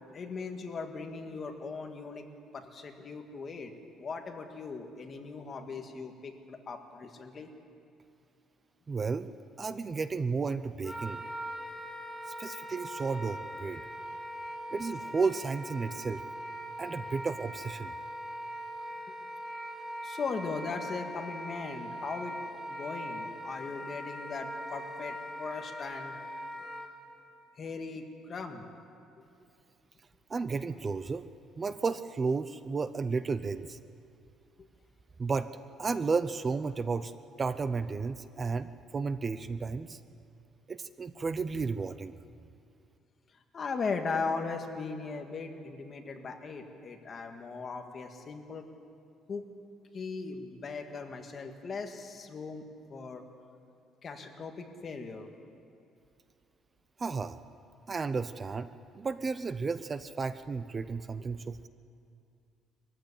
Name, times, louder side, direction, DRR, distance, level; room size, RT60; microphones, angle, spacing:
voice 1, 0.1-2.3 2.5-3.7 4.0-7.5 20.0-22.3 22.7-26.1 27.6-28.7 43.5-48.6 49.3-49.4 49.9-53.2 54.0-55.3, left 4 dB, 30° left, 4 dB, 1.8 m, -38 dB
voice 2, 8.9-9.3 9.6-11.2 12.4-13.8 14.7-16.2 16.8-17.9 30.3-31.3 31.6-33.8 35.2-35.5 35.8-37.1 37.4-40.0 40.7-42.1 57.0-57.4 57.9-58.7 58.9-61.7, right 4 dB, 20° right, 12 dB, 0.6 m, -33 dB
Wind instrument woodwind instrument, 10.8-26.9, equal, ahead, 2.3 m, -41 dB
22.5 x 15.5 x 10.0 m, 2.4 s
cardioid pair, 165°, 0 cm